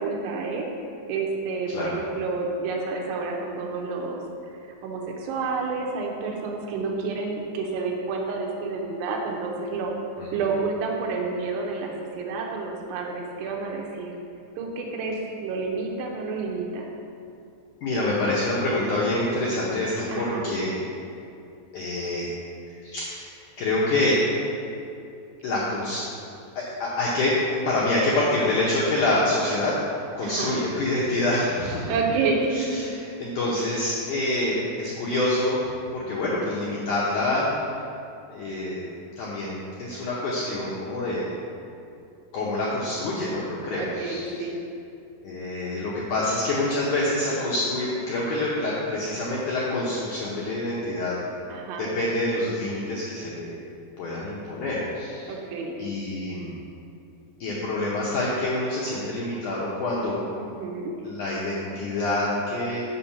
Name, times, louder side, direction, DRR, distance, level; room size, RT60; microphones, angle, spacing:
voice 1, 0.0-4.2 4.8-9.9 10.3-14.1 14.6-16.9 20.1-20.5 30.2-30.6 31.9-32.8 36.2-36.5 43.8-44.6 51.5-51.9 55.3-55.8 60.4-60.9, right 4 dB, 80° right, 0 dB, 3.0 m, -29 dB
voice 2, 17.8-20.7 21.7-22.3 22.8-24.2 25.4-26.0 26.6-27.3 27.7-29.7 30.1-32.0 32.5-35.6 35.9-37.5 38.3-38.9 39.2-41.3 42.3-44.4 45.2-51.2 51.8-53.6 54.0-55.3 55.8-56.5 57.4-60.2 61.0-62.8, left 2 dB, 80° left, -6 dB, 1.8 m, -26 dB
6.8 x 5.3 x 7.2 m, 2.6 s
omnidirectional pair, 5.0 m